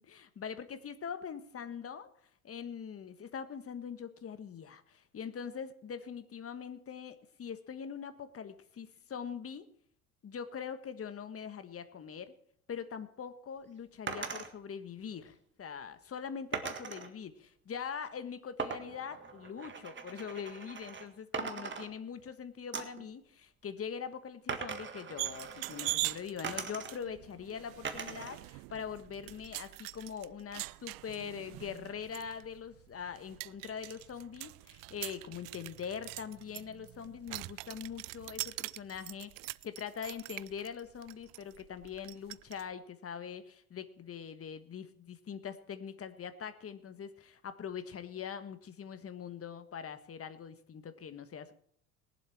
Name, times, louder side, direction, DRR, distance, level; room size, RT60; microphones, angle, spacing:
voice 1, 0.0-2.1 2.4-9.7 10.2-12.3 12.7-39.3 39.6-51.5, left 7 dB, 30° left, 11 dB, 1.5 m, -43 dB
sound 1, 14.1-14.5 16.5-17.1 18.6-21.1 21.3-22.3 22.7-23.1 24.5-26.0 26.4-27.2 27.8-28.4 28.7-29.5, right 5 dB, 25° right, 1.7 m, -40 dB
sound 2, 25.2-42.6, right 22 dB, 55° right, 0.5 m, -43 dB
21.0 x 7.7 x 4.5 m, 0.63 s
hypercardioid pair, 70°, 43 cm